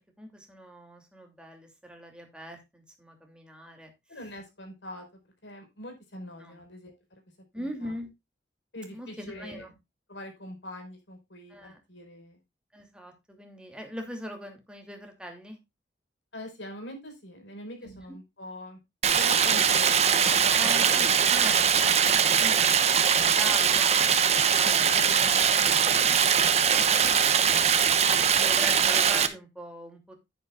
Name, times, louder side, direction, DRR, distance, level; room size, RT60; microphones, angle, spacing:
voice 1, 0.2-3.9 6.4-6.6 7.5-8.1 8.9-9.7 11.5-11.8 12.7-15.6 17.8-18.0 20.5-21.7 22.0-26.4 28.3-30.1, equal, 5° right, 3 dB, 2.7 m, -41 dB
voice 2, 4.1-5.0 5.4-7.2 7.6-7.9 8.7-9.6 10.1-12.4 16.3-18.8 19.1-20.4 20.7-21.5 24.9-25.6, left 1 dB, 80° left, 4 dB, 4.9 m, -43 dB
Stream, 19.0-29.3, right 7 dB, 35° right, 1.0 m, -22 dB
10.5 x 10.5 x 2.4 m, 0.22 s
head